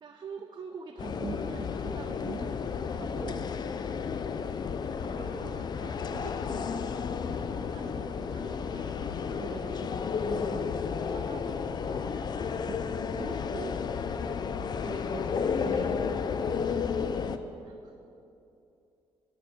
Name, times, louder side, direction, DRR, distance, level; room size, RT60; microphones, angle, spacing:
voice 1, 0.0-3.5 5.0-7.0 7.5-10.7 11.0-12.1 12.5-13.9 14.6-16.4, right 5 dB, 45° right, 3 dB, 0.6 m, -44 dB
sound 1, 1.0-17.4, left 6 dB, 45° left, 0.4 m, -32 dB
voice 2, 17.1-17.6, left 2 dB, 85° left, -1 dB, 1.3 m, -54 dB
12.0 x 4.4 x 7.5 m, 2.7 s
cardioid pair, 110°, 10 cm